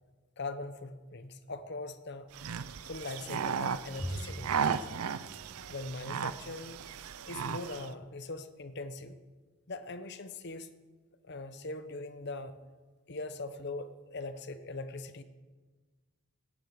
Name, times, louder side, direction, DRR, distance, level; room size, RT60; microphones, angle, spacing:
voice 1, 0.4-2.3 2.9-4.8 5.7-6.8 7.3-9.2 9.7-10.7 11.2-12.6 13.1-15.2, left 2 dB, 50° left, 11 dB, 0.8 m, -41 dB
sound 1, 2.3-7.9, right 6 dB, 85° right, 0.5 m, -35 dB
Bowed string instrument, 4.0-6.5, equal, 35° left, 2.6 m, -43 dB
15.0 x 10.5 x 6.4 m, 1.4 s
head